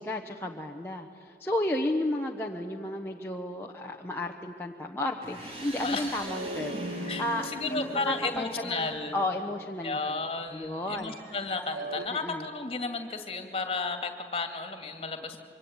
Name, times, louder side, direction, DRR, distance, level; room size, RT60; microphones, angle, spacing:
voice 1, 0.0-10.2 10.5-11.2 12.1-12.5, left 1 dB, 15° left, 0 dB, 1.0 m, -33 dB
sound 1, 5.2-9.0, right 1 dB, 35° right, 3.4 m, -43 dB
sound 2, 5.7-9.9 10.9-12.1, right 1 dB, 50° right, 1.6 m, -40 dB
voice 2, 7.5-9.2 9.8-15.4, left 3 dB, 30° left, 6 dB, 2.3 m, -33 dB
25.5 x 24.5 x 9.5 m, 2.7 s
head